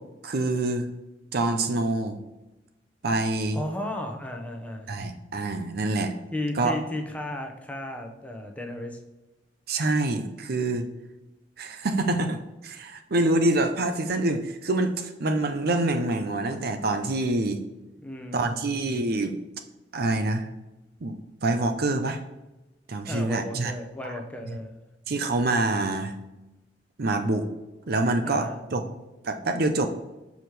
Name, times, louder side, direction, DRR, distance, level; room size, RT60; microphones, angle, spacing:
voice 1, 0.2-0.9 1.3-2.2 3.0-3.6 4.9-6.1 6.6-6.8 9.7-10.9 11.6-17.6 18.3-19.4 19.9-20.5 21.0-22.2 22.9-23.7 25.1-26.1 27.0-27.4 27.9-28.8 29.2-29.9, right 2 dB, 60° right, 7 dB, 0.7 m, -26 dB
voice 2, 3.5-4.9 6.3-9.0 18.0-18.6 23.1-24.8 28.2-28.6, left 1 dB, 10° left, 3 dB, 0.8 m, -34 dB
5.9 x 4.8 x 3.4 m, 1.0 s
head